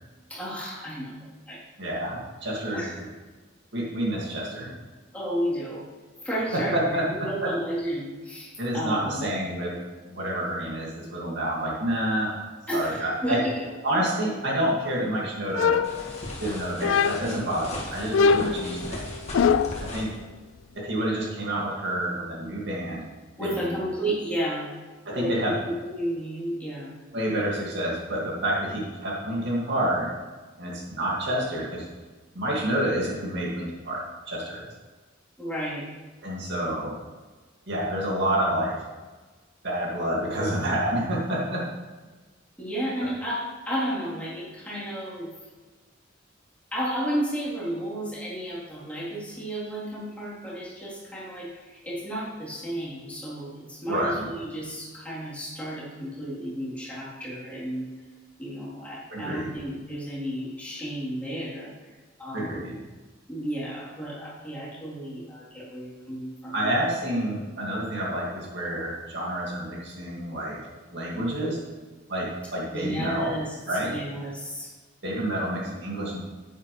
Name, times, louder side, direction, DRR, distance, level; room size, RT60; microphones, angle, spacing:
voice 1, 0.3-1.1 1.5-1.6 2.7-2.9 5.1-5.9 6.2-9.2 12.7-13.7 23.4-24.7 25.1-27.0 35.4-35.9 42.6-45.3 46.7-57.9 58.4-61.7 62.2-62.7 63.3-66.7 72.7-74.7, equal, 5° left, -9 dB, 3.5 m, -32 dB
voice 2, 1.8-2.8 3.7-4.7 6.5-7.5 8.6-9.7 10.1-12.3 12.7-13.4 13.8-15.8 16.4-19.1 19.8-20.1 20.8-23.0 23.4-23.7 25.1-25.6 27.1-30.1 30.6-31.9 32.3-34.0 34.3-34.7 36.2-37.0 37.7-38.7 39.6-41.6 53.9-54.3 59.1-59.5 62.3-62.8 66.5-70.6 70.9-71.6 72.1-73.3 73.7-74.0 75.0-76.2, right 1 dB, 60° right, -3 dB, 2.3 m, -28 dB
sound 1, 15.6-16.4 16.8-17.5 18.1-19.9, left 6 dB, 75° left, 0.3 m, -23 dB
sound 2, 15.8-20.2, left 1 dB, 35° left, 2.0 m, -37 dB
11.0 x 9.1 x 3.3 m, 1.3 s
head